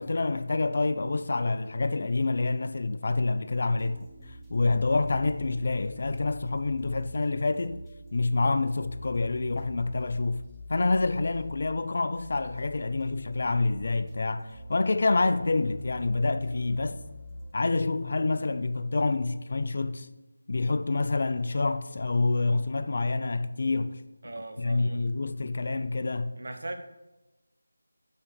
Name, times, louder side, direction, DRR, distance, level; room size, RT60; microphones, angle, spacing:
voice 1, 0.0-4.1 4.5-7.8 8.1-10.4 10.7-17.0 17.5-20.1 20.5-24.0 24.6-26.3, left 3 dB, 50° left, 0.4 m, -27 dB
sound 1, 3.7-17.5, left 1 dB, 5° right, 0.7 m, -45 dB
voice 2, 24.2-25.0 26.4-26.8, right 2 dB, 60° right, 0.9 m, -38 dB
6.2 x 5.6 x 4.9 m
figure-of-eight pair, 165°, 0 cm